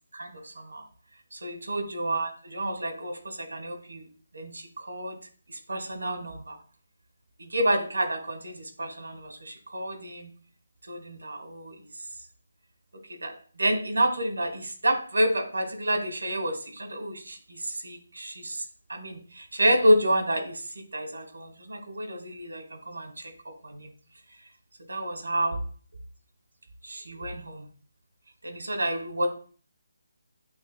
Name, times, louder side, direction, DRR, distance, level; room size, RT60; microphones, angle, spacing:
voice 1, 0.1-0.8 1.3-4.0 4.3-5.2 5.5-6.6 7.4-10.3 10.9-11.7 13.1-18.6 18.9-23.3 23.6-23.9 24.9-25.6 26.8-27.6 28.4-29.3, right 1 dB, 85° right, 4 dB, 1.5 m, -29 dB
7.9 x 3.0 x 2.2 m, 0.43 s
figure-of-eight pair, 155°, 0 cm